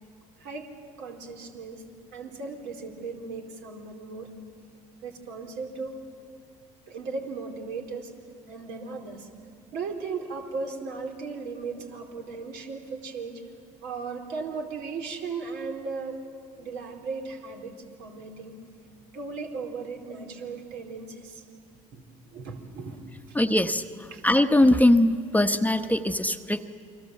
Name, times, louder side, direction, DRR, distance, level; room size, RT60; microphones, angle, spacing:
voice 1, 0.4-0.7 1.0-1.8 2.1-4.3 5.0-5.9 6.9-8.1 8.5-9.3 9.7-13.4 13.8-16.2 16.6-18.6 19.1-21.4 21.9-23.4 24.1-24.2, right 4 dB, 75° right, 2 dB, 4.3 m, -36 dB
voice 2, 23.3-23.8 24.2-26.7, left 1 dB, 10° left, 8 dB, 1.1 m, -21 dB
29.0 x 23.0 x 7.9 m, 2.2 s
hypercardioid pair, 65°, 18 cm